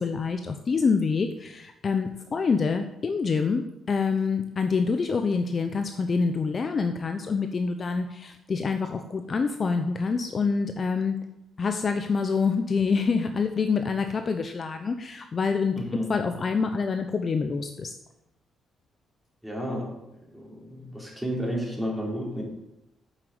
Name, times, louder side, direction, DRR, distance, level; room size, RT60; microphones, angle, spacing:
voice 1, 0.0-11.1 11.6-15.7 16.1-17.9, left 5 dB, 40° left, 7 dB, 0.8 m, -26 dB
voice 2, 15.7-16.2 19.4-20.0 20.3-22.4, equal, 5° right, -3 dB, 4.1 m, -31 dB
7.9 x 7.4 x 7.9 m, 0.89 s
cardioid pair, 90°, 0 cm